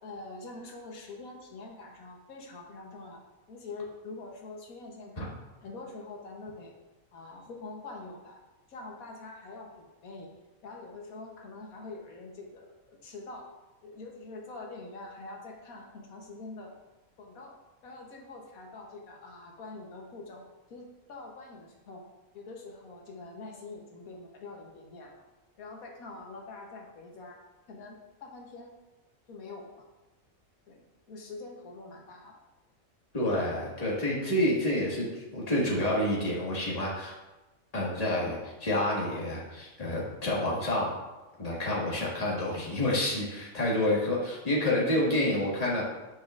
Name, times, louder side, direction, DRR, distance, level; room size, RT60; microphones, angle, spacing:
voice 1, 0.0-3.2 3.5-5.3 5.6-6.7 7.1-8.4 8.7-10.3 10.6-13.5 13.8-16.7 17.2-17.5 17.8-20.4 20.7-22.0 22.3-25.1 25.6-27.4 27.7-28.8 29.3-29.8 30.7-30.8 31.1-32.4, left 3 dB, 85° left, 0 dB, 1.5 m, -45 dB
voice 2, 33.1-37.2 37.7-41.0 41.4-45.9, left 1 dB, 25° left, -5 dB, 1.8 m, -28 dB
10.5 x 5.9 x 2.5 m, 1.1 s
omnidirectional pair, 1.4 m